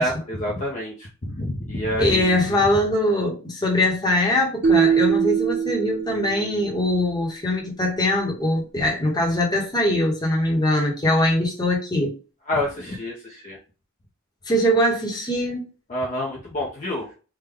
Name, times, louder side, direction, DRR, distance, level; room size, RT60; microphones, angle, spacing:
voice 1, 0.0-2.6 8.8-8.9 12.5-13.6 15.9-17.1, equal, 35° left, 0.6 m, -27 dB
voice 2, 2.0-12.1 14.5-15.6, left 1 dB, 20° left, 0.9 m, -22 dB
sound 1, 4.6-6.8, right 6 dB, 35° right, 0.4 m, -22 dB
3.5 x 2.2 x 3.3 m
head